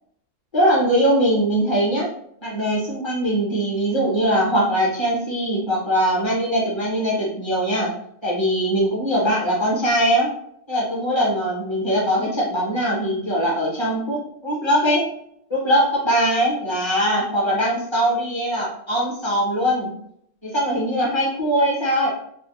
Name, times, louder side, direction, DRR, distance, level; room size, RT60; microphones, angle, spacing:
voice 1, 0.5-2.1 2.4-7.9 8.2-10.3 10.7-15.1 15.5-19.9 20.4-22.2, equal, 30° left, -4 dB, 0.5 m, -21 dB
2.5 x 2.1 x 2.8 m, 0.71 s
omnidirectional pair, 1.3 m